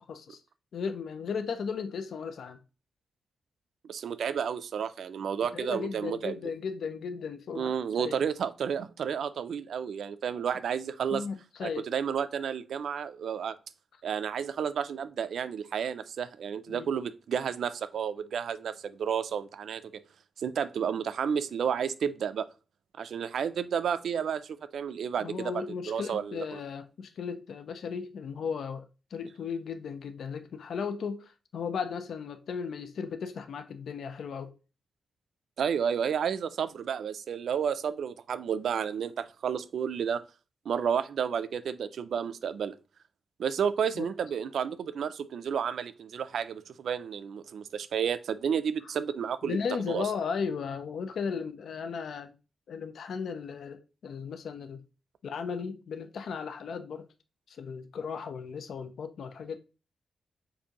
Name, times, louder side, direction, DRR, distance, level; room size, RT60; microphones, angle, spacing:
voice 1, 0.1-0.4 0.7-2.6 5.4-7.7 8.0-8.1 11.1-11.9 16.7-16.9 25.2-34.5 44.0-44.1 49.4-52.4 52.7-54.8 55.2-57.1 57.5-59.6, left 6 dB, 70° left, 0.4 m, -36 dB
voice 2, 3.8-6.4 7.5-11.2 11.6-13.6 14.0-19.9 20.4-22.5 23.0-25.5 25.9-26.6 35.6-40.2 40.7-42.7 43.4-49.6 49.9-50.1, right 7 dB, 75° right, 0.3 m, -31 dB
6.8 x 2.6 x 2.9 m
wide cardioid pair, 175°, 0 cm